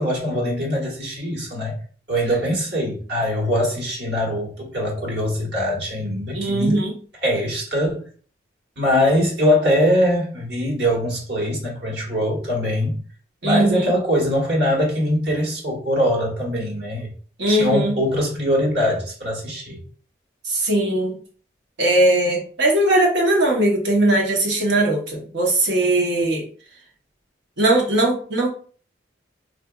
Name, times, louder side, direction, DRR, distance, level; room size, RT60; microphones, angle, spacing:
voice 1, 0.0-1.8 2.1-6.8 7.2-8.0 8.8-13.0 13.4-17.1 17.5-19.8, equal, 70° right, 1.4 m, -22 dB
voice 2, 6.3-6.9 13.4-13.9 17.4-17.9 20.5-21.1 21.8-26.4 27.6-28.5, right 1 dB, 85° right, 1.0 m, -19 dB
4.7 x 2.5 x 2.3 m
head